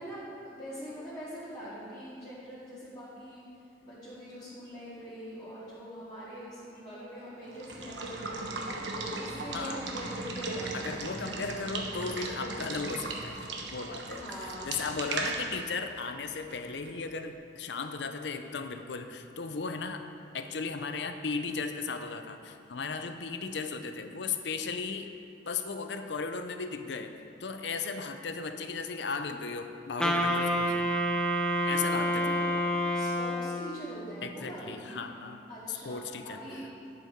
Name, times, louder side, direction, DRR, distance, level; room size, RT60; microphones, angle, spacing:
voice 1, 0.0-3.4 3.8-8.3 8.8-11.0 14.1-14.7 31.7-32.5 32.9-35.0 35.5-36.0 36.2-36.6, equal, 20° left, -12 dB, 2.1 m, -43 dB
Water / Water tap faucet / Liquid, 7.5-17.1, right 3 dB, 75° right, 1.0 m, -37 dB
voice 2, 9.5-9.8 10.7-14.3 14.7-20.0 20.3-25.1 25.5-27.1 27.4-30.9 31.6-32.4 34.2-35.4 35.8-36.4, left 4 dB, 70° left, 7 dB, 0.6 m, -36 dB
Wind instrument woodwind instrument, 30.0-33.9, equal, 5° left, 0.5 m, -28 dB
11.0 x 7.0 x 4.5 m, 2.5 s
head